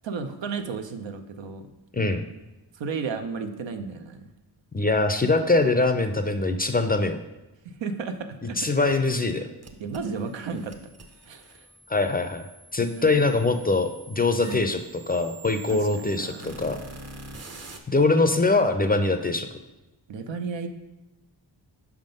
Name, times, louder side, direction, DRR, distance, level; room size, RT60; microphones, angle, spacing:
voice 1, 0.0-1.7 2.7-4.3 7.6-8.6 9.8-10.7 11.2-11.7 12.9-13.3 14.4-14.7 15.7-16.6 20.1-20.7, right 5 dB, 75° right, 7 dB, 0.7 m, -33 dB
voice 2, 1.9-2.2 4.7-7.2 8.6-9.5 11.9-12.4 12.7-14.8 15.1-16.8 17.9-19.5, left 3 dB, 20° left, 7 dB, 0.4 m, -23 dB
sound 1, 9.6-17.8, right 2 dB, 35° right, 0.7 m, -46 dB
5.7 x 3.7 x 5.2 m, 1.0 s
wide cardioid pair, 85°, 44 cm